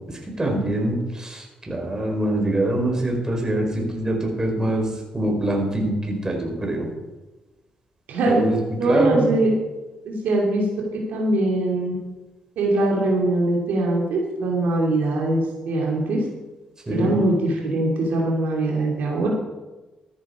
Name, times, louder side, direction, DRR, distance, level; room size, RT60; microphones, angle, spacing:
voice 1, 0.1-6.9 8.3-9.3 16.9-17.1, right 1 dB, 20° right, 1 dB, 4.5 m, -24 dB
voice 2, 8.1-8.4 8.8-9.5 10.0-10.6 11.1-11.9 12.6-16.2 17.0-19.3, right 2 dB, 80° right, -2 dB, 3.0 m, -22 dB
14.0 x 10.0 x 4.9 m, 1.1 s
cardioid pair, 70°, 3 cm